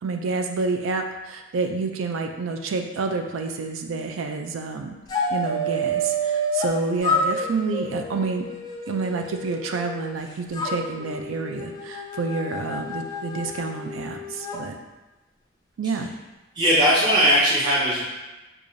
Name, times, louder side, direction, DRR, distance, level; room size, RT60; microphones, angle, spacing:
voice 1, 0.0-5.0 5.3-8.4 8.9-14.8 15.8-16.1, right 4 dB, 80° right, 4 dB, 0.4 m, -28 dB
sound 1, 5.1-6.7 7.0-10.1 10.5-14.6, equal, 20° left, 0.3 m, -29 dB
voice 2, 16.5-18.0, equal, 20° right, -10 dB, 0.7 m, -19 dB
4.7 x 2.4 x 2.6 m, 1.1 s
head